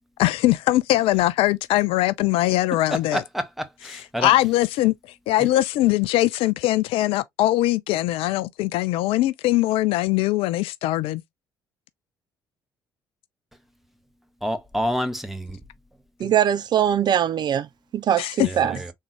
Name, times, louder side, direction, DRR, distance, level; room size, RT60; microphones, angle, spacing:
voice 1, 0.2-3.2 4.2-4.9 5.3-11.2 16.2-16.3 18.2-18.5, left 16 dB, 60° left, 0.4 m, -21 dB
voice 2, 2.9-4.3 5.4-5.5 14.4-15.6 18.4-18.9, equal, ahead, 1.0 m, -28 dB
voice 3, 16.2-17.7 17.9-18.8, right 10 dB, 40° right, 0.4 m, -21 dB
3.6 x 3.2 x 3.0 m
figure-of-eight pair, 50°, 11 cm